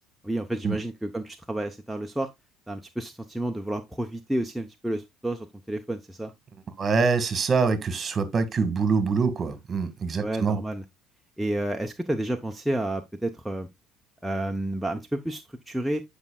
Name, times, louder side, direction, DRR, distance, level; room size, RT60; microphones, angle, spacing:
voice 1, 0.2-2.3 2.7-6.3 10.1-10.8 11.4-13.7 14.2-16.0, right 1 dB, 5° right, 0.7 m, -30 dB
voice 2, 6.8-10.6, right 5 dB, 35° right, 1.6 m, -25 dB
9.6 x 5.3 x 2.3 m
supercardioid pair, 95°, 0 cm